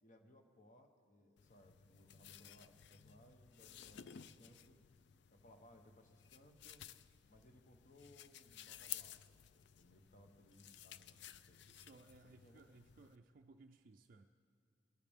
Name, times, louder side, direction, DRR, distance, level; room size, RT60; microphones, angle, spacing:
voice 1, 0.0-4.8 5.3-6.9 7.3-11.6 12.4-12.6, left 1 dB, 45° left, 5 dB, 1.1 m, -65 dB
sound 1, 1.4-13.2, left 10 dB, 65° left, 0.4 m, -55 dB
voice 2, 11.7-14.3, right 3 dB, 50° right, 4 dB, 0.4 m, -62 dB
20.0 x 14.0 x 3.6 m, 2.4 s
head